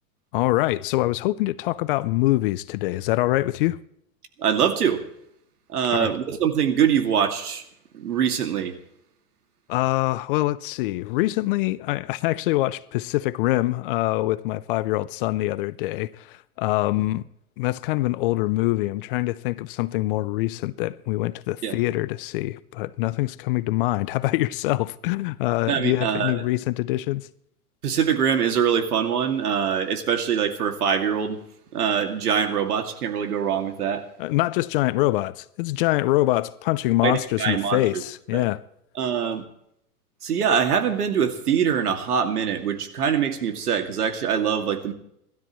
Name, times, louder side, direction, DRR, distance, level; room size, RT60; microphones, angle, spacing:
voice 1, 0.3-3.8 5.9-6.1 9.7-17.2 17.6-27.3 34.2-38.6, left 18 dB, 40° left, 0.6 m, -24 dB
voice 2, 4.4-5.0 5.7-7.6 7.9-8.7 21.6-21.8 25.7-26.4 27.8-31.4 31.7-34.0 37.0-38.0 38.3-38.5 39.0-39.4 40.2-44.9, right 7 dB, 80° right, 2.5 m, -23 dB
28.5 x 13.0 x 3.1 m
hypercardioid pair, 130°, 45 cm